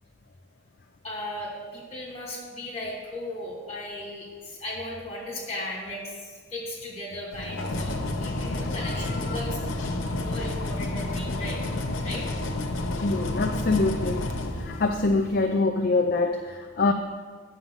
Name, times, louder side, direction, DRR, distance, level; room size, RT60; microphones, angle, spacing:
voice 1, 1.0-9.6 10.2-11.6 12.0-12.3, left 1 dB, 35° left, -4 dB, 3.2 m, -36 dB
sound 1, 7.3-15.3, left 2 dB, 85° left, 0.9 m, -30 dB
voice 2, 13.0-14.2 14.6-16.9, left 3 dB, 50° left, 5 dB, 0.5 m, -24 dB
10.0 x 5.6 x 7.3 m, 1.5 s
head